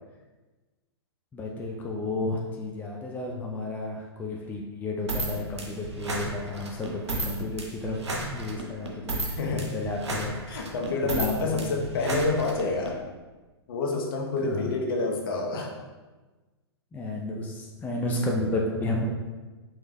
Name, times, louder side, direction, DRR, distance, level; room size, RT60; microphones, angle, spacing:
voice 1, 1.3-9.2 9.5-10.4 11.2-11.6 14.4-14.8 16.9-19.1, left 2 dB, 10° left, -1 dB, 0.5 m, -32 dB
sound 1, 5.1-12.9, right 2 dB, 85° right, 0.8 m, -33 dB
voice 2, 9.2-9.7 10.5-13.0 13.7-15.7, left 3 dB, 55° left, 1 dB, 0.9 m, -28 dB
5.1 x 4.4 x 2.2 m, 1.2 s
figure-of-eight pair, 110°, 14 cm